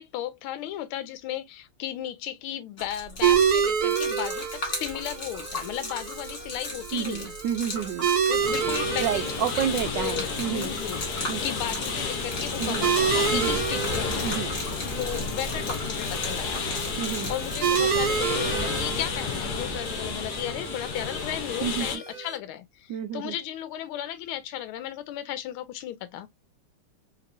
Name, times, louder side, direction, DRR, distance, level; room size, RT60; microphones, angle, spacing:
voice 1, 0.0-7.3 8.3-14.4 15.0-16.8 17.3-26.3, left 12 dB, 80° left, 1.4 m, -35 dB
Gurgling / Liquid, 2.8-18.2, left 1 dB, 35° left, 1.8 m, -37 dB
sound 1, 3.2-22.4, right 7 dB, 55° right, 1.1 m, -30 dB
voice 2, 6.9-8.1 9.0-10.7 11.3-11.4 12.6-12.9 13.3-13.6 14.2-14.5 17.0-17.3 21.6-22.0 22.9-23.4, right 9 dB, 80° right, 1.0 m, -30 dB
sound 2, 8.4-22.0, left 5 dB, 60° left, 1.2 m, -31 dB
3.5 x 2.9 x 2.4 m
omnidirectional pair, 2.4 m